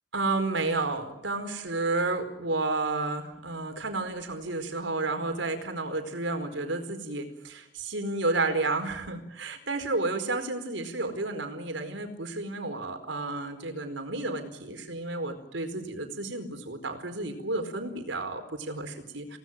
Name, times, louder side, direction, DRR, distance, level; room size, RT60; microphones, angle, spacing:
voice 1, 0.1-19.4, right 2 dB, 85° right, 7 dB, 4.6 m, -31 dB
28.5 x 18.5 x 7.5 m, 0.89 s
head